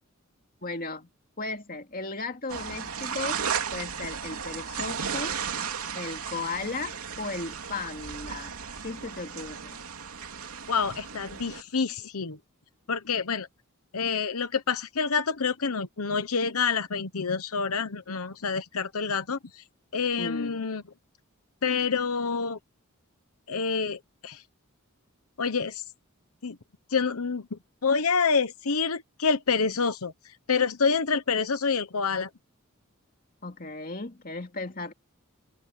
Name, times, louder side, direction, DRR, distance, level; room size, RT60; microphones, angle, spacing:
voice 1, 0.6-1.1 1.4-3.4 3.7-5.4 5.9-8.5 8.8-9.8 20.2-20.6 33.4-34.9, left 3 dB, 40° left, 2.4 m, -36 dB
sound 1, 2.5-11.6, right 6 dB, 90° right, 2.9 m, -35 dB
voice 2, 10.7-12.4 12.9-13.5 13.9-19.6 19.9-20.8 21.6-22.6 23.5-24.4 25.4-25.8 26.4-26.6 26.9-30.1 30.5-32.3, left 5 dB, 90° left, 1.0 m, -27 dB
head